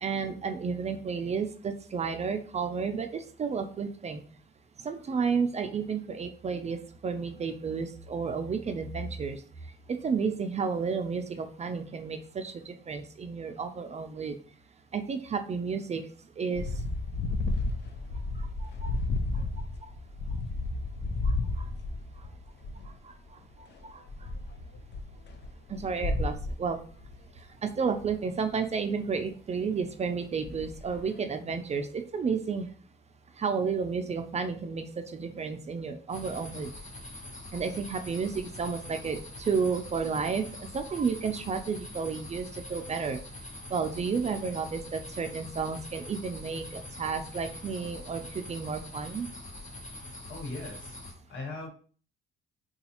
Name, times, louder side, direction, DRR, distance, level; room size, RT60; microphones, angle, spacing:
voice 1, 0.0-4.2 4.8-9.4 9.9-14.4 14.9-16.0 16.4-16.7 18.4-19.0 19.3-19.9 21.2-21.6 23.0-23.1 23.8-24.0 25.7-26.8 27.6-32.7 33.4-36.7 37.5-43.2 43.7-49.3, right 5 dB, 35° right, 7 dB, 0.4 m, -32 dB
sound 1, 16.5-23.0 23.3-27.2 28.0-28.1 30.4-31.0, left 2 dB, 60° left, 0.5 m, -33 dB
sound 2, 36.1-51.1, left 1 dB, 40° left, 1.0 m, -44 dB
voice 2, 50.3-50.9 51.3-51.7, left 2 dB, 75° left, 0 dB, 1.3 m, -38 dB
3.9 x 2.3 x 2.9 m, 0.43 s
cardioid pair, 90°, 20 cm